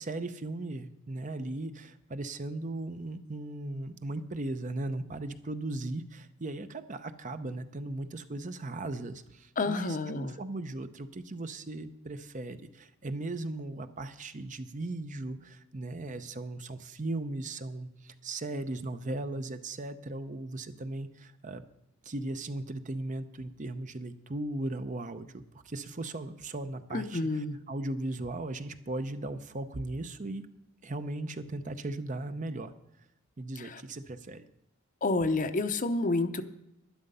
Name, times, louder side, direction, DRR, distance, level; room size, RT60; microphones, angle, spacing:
voice 1, 0.0-21.6 22.0-30.5 30.8-32.7 33.4-34.4, right 2 dB, 35° right, 10 dB, 0.7 m, -37 dB
voice 2, 9.6-10.3 26.9-27.6 33.6-33.8 35.0-36.4, left 3 dB, 40° left, 9 dB, 0.7 m, -29 dB
11.5 x 11.0 x 5.5 m, 0.84 s
head